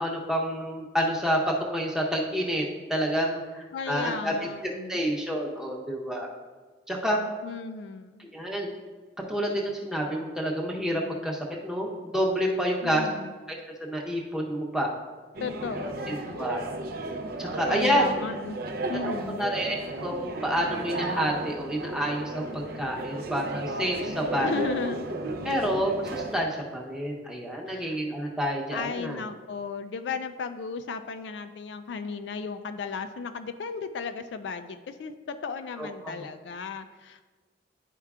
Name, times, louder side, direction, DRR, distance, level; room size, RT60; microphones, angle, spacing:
voice 1, 0.0-1.4 1.7-2.6 2.9-4.3 4.9-6.3 6.9-7.2 8.2-8.7 9.3-13.1 13.5-14.9 16.1-16.6 17.4-18.1 19.1-24.8 25.4-29.2 35.8-36.1, equal, 5° right, -2 dB, 0.8 m, -29 dB
voice 2, 3.7-5.0 7.4-8.3 12.8-13.3 15.4-16.7 17.7-18.6 18.9-19.4 24.4-25.1 27.7-28.0 28.7-37.2, left 5 dB, 75° left, 9 dB, 0.4 m, -35 dB
sound 1, 15.3-26.4, right 2 dB, 55° right, 0.5 m, -34 dB
11.0 x 4.5 x 2.4 m, 1.3 s
head